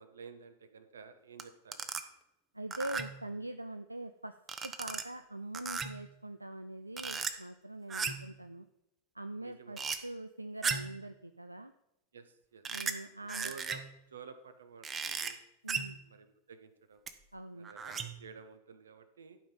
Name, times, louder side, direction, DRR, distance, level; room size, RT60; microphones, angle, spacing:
voice 1, 0.0-1.9 9.4-9.9 12.1-12.6 13.4-13.8 14.1-15.4 16.1-17.0 17.5-19.4, right 6 dB, 65° right, 10 dB, 1.0 m, -52 dB
sound 1, 1.4-1.5 1.7-2.0 2.7-3.2 4.5-5.0 5.5-6.1 7.0-7.3 7.9-8.3 9.8-10.0 10.6-11.0 12.7-12.9 13.3-13.9 14.8-15.3 15.7-16.0 17.1-17.2 17.6-18.2, right 6 dB, 20° right, 0.8 m, -36 dB
voice 2, 2.5-4.4 4.6-8.7 9.1-11.7 12.7-13.5 15.6-16.0 17.3-17.7, right 1 dB, 85° right, 9 dB, 0.4 m, -43 dB
11.5 x 5.2 x 5.5 m, 0.85 s
figure-of-eight pair, 90°, 0 cm